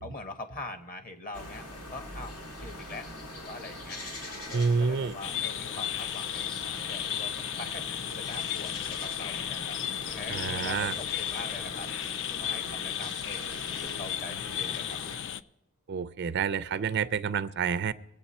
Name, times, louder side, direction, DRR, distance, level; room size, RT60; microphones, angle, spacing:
voice 1, 0.0-3.1 3.3-4.0 4.5-7.8 8.2-9.8 10.0-11.9 12.3-13.4 13.7-15.2, left 2 dB, 40° left, 8 dB, 1.2 m, -43 dB
sound 1, 1.3-15.2, left 1 dB, 80° left, 2.5 m, -43 dB
voice 2, 4.5-5.1 10.3-11.0 15.9-17.9, right 5 dB, 50° right, 15 dB, 0.4 m, -28 dB
sound 2, 5.2-15.4, left 10 dB, 55° left, 0.4 m, -34 dB
23.0 x 8.3 x 4.2 m, 0.86 s
head